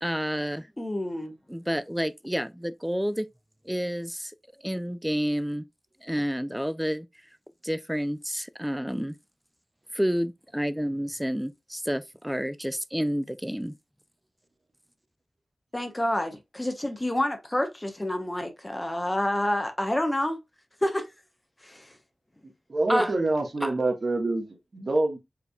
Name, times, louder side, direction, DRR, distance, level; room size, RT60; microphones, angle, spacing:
voice 1, 0.0-0.7 1.5-3.3 3.7-4.3 4.6-5.6 6.0-7.1 7.6-9.2 9.9-13.7 22.9-23.1 23.6-23.7, equal, 5° right, 0.4 m, -29 dB
voice 2, 0.8-1.3 15.7-20.4 20.8-21.1 21.6-21.9, left 1 dB, 20° left, 0.9 m, -28 dB
voice 3, 22.7-25.2, right 2 dB, 50° right, 1.4 m, -26 dB
4.9 x 3.3 x 2.3 m
wide cardioid pair, 70°, 0 cm